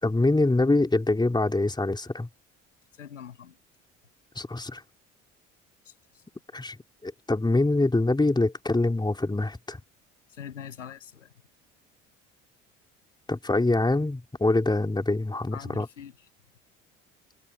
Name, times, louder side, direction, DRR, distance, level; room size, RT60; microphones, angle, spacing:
voice 1, 0.0-2.3 4.4-4.8 6.5-6.8 7.0-9.8 13.3-15.9, left 2 dB, 10° left, 4.2 m, -24 dB
voice 2, 3.0-3.6 5.9-6.2 10.3-11.3 15.5-16.1, left 8 dB, 85° left, 7.7 m, -43 dB
figure-of-eight pair, 55°, 37 cm